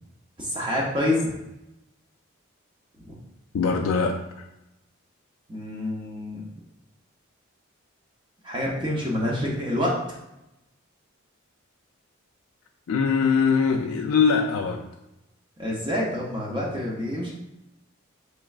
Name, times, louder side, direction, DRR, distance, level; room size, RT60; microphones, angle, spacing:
voice 1, 0.4-1.4 5.5-6.4 8.4-9.9 15.6-17.3, left 1 dB, 20° right, -4 dB, 0.6 m, -27 dB
voice 2, 3.5-4.5 12.9-14.8, left 5 dB, 75° left, 1 dB, 0.3 m, -22 dB
4.5 x 3.1 x 2.4 m, 0.90 s
head